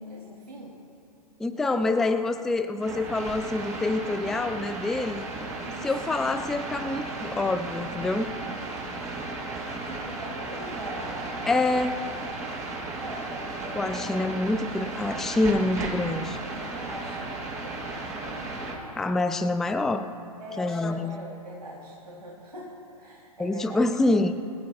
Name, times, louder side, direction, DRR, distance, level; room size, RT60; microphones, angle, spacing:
voice 1, 0.1-0.7 1.5-2.1 5.6-6.2 9.7-11.4 13.0-14.2 16.7-18.7 20.4-23.9, right 1 dB, 90° right, -5 dB, 3.1 m, -41 dB
voice 2, 1.4-5.3 5.8-8.4 11.5-12.0 13.8-16.4 19.0-20.1 20.6-21.2 23.4-24.4, left 2 dB, ahead, 9 dB, 0.3 m, -26 dB
sound 1, 2.8-18.8, right 3 dB, 15° right, 4.0 m, -35 dB
27.0 x 15.0 x 2.4 m, 2.7 s
hypercardioid pair, 120°, 20 cm